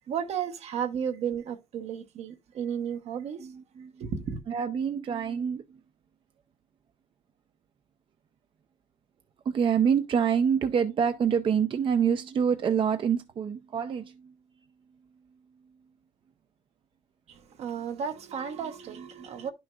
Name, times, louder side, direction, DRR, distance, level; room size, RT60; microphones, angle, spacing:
voice 1, 0.0-3.5 4.0-4.4 17.3-19.5, right 7 dB, 65° right, 1.1 m, -33 dB
voice 2, 4.5-5.6 9.5-14.1, right 7 dB, 45° right, 0.6 m, -26 dB
10.5 x 6.1 x 2.4 m
cardioid pair, 100°, 12 cm